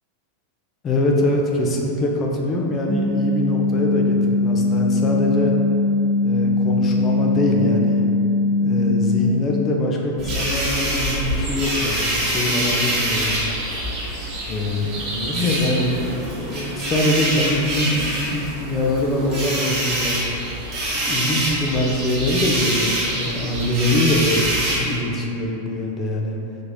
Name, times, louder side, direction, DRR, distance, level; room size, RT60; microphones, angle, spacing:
voice 1, 0.8-5.5 6.2-8.1 8.6-13.4 14.5-20.2 21.1-26.4, left 1 dB, 25° left, 0 dB, 0.4 m, -23 dB
sound 1, 2.9-9.2, left 3 dB, 65° right, 1.0 m, -20 dB
sound 2, 10.2-25.0, right 1 dB, 40° right, 1.0 m, -25 dB
4.4 x 2.9 x 2.3 m, 2.8 s
figure-of-eight pair, 90°, 0 cm